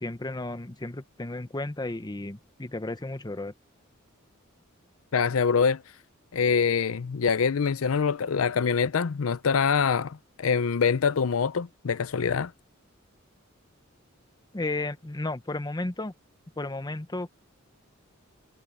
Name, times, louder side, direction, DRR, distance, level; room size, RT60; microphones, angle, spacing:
voice 1, 0.0-3.5 14.5-16.1 16.6-17.4, left 2 dB, 20° left, 0.9 m, -33 dB
voice 2, 5.1-5.8 6.3-12.5, left 6 dB, 85° left, 0.5 m, -25 dB
head